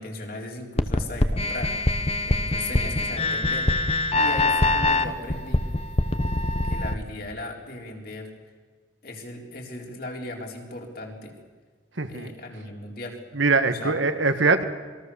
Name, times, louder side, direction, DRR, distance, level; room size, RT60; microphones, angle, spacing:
voice 1, 0.0-5.7 6.6-8.3 9.0-11.4 12.1-13.2 13.7-14.0, left 2 dB, 50° left, 1 dB, 4.1 m, -37 dB
sound 1, 0.8-6.9, left 2 dB, 30° left, 1.1 m, -23 dB
voice 2, 12.0-12.3 13.3-14.6, right 4 dB, 80° right, 8 dB, 1.7 m, -22 dB
27.5 x 21.5 x 7.1 m, 1.5 s
head